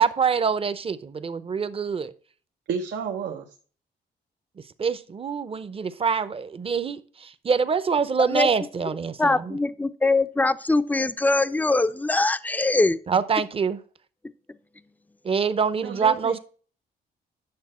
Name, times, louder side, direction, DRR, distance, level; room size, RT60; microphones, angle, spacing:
voice 1, 0.0-2.1 4.8-9.6 13.1-13.8 15.2-16.4, right 6 dB, 30° right, 0.7 m, -25 dB
voice 2, 2.7-3.5 15.8-16.4, right 7 dB, 85° right, 0.9 m, -31 dB
voice 3, 9.2-13.0, left 2 dB, 10° left, 0.5 m, -22 dB
9.6 x 6.5 x 4.2 m
cardioid pair, 105°, 18 cm